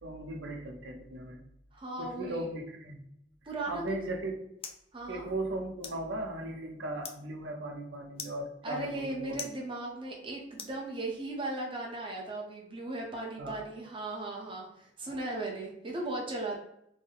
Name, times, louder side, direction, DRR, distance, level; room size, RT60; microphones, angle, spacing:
voice 1, 0.0-1.4 2.0-3.0 3.4-4.4 5.1-9.4 13.4-13.6 15.0-15.2, right 1 dB, 75° right, 2 dB, 0.7 m, -37 dB
voice 2, 1.7-2.5 3.5-3.9 4.9-5.3 8.6-16.6, right 2 dB, 25° right, -1 dB, 0.7 m, -37 dB
sound 1, 3.8-11.4, left 6 dB, 30° left, 0.3 m, -49 dB
3.5 x 2.0 x 3.7 m, 0.79 s
head